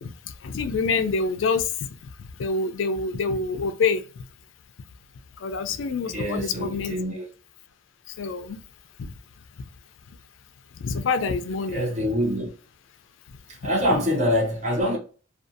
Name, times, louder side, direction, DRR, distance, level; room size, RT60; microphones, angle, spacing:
voice 1, 0.4-1.7 2.4-4.0 5.4-7.0 8.2-8.6 9.0-9.1 10.8-11.8, left 4 dB, 70° left, 0.4 m, -26 dB
voice 2, 6.1-7.3 11.7-12.5 13.5-15.0, equal, 35° right, 0.7 m, -25 dB
2.5 x 2.3 x 2.6 m
head